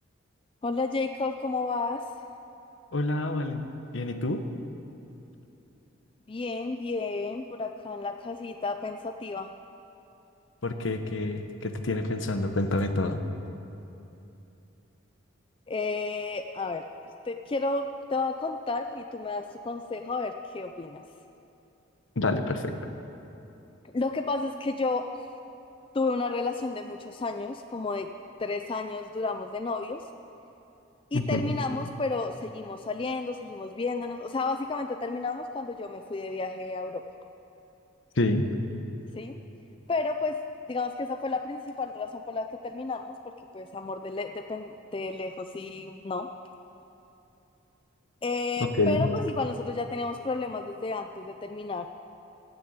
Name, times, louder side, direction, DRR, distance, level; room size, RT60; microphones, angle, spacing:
voice 1, 0.6-2.1 6.3-9.5 15.7-16.9 17.3-21.0 23.9-25.3 25.9-28.1 28.4-30.0 31.1-37.0 39.2-39.4 39.9-40.4 40.7-46.3 48.2-51.9, left 3 dB, 25° left, 6 dB, 0.3 m, -32 dB
voice 2, 2.9-3.6 3.9-4.4 10.6-13.2 22.2-22.7 31.1-31.6 38.2-38.5 48.8-49.1, left 2 dB, 70° left, 7 dB, 0.9 m, -27 dB
16.5 x 6.8 x 8.1 m, 3.0 s
head